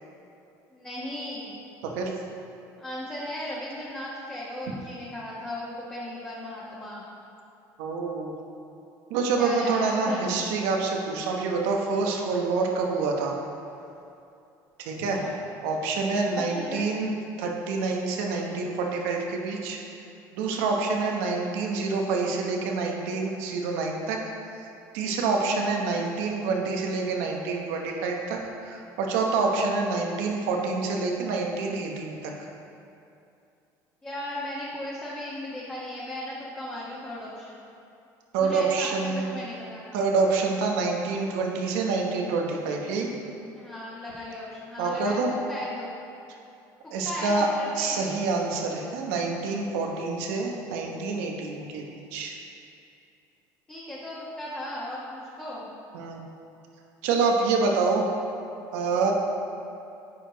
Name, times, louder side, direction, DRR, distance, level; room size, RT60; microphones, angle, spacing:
voice 1, 0.7-1.6 2.8-7.0 9.4-10.3 15.2-15.4 16.3-16.8 21.0-21.1 34.0-37.6 38.4-40.0 43.5-45.2 45.5-45.9 47.0-48.0 53.7-55.7, left 1 dB, 15° left, -8 dB, 1.3 m, -36 dB
voice 2, 1.8-2.1 7.8-8.3 9.1-13.3 14.8-15.2 15.6-17.1 17.4-19.8 20.3-24.2 24.9-32.3 38.3-39.3 39.9-43.1 44.8-45.3 46.9-47.5 47.8-52.3 55.9-56.2 57.0-58.0 58.7-59.1, right 4 dB, 85° right, 1 dB, 1.0 m, -27 dB
9.8 x 4.6 x 3.9 m, 2.7 s
cardioid pair, 115°, 8 cm